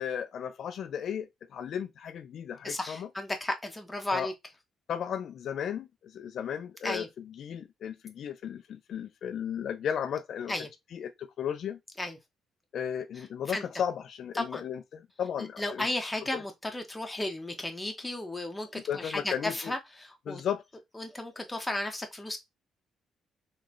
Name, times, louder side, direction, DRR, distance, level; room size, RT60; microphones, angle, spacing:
voice 1, 0.0-3.1 4.1-4.3 4.9-10.5 10.9-11.8 12.7-15.9 16.3-16.4 18.7-19.7 20.3-20.6, left 8 dB, 65° left, 0.4 m, -35 dB
voice 2, 2.6-4.3 6.8-7.1 10.5-10.7 12.0-12.2 13.2-13.6 14.3-14.6 15.6-20.4 20.9-22.4, left 1 dB, 10° left, 1.0 m, -34 dB
3.8 x 3.2 x 3.0 m
cardioid pair, 90°, 0 cm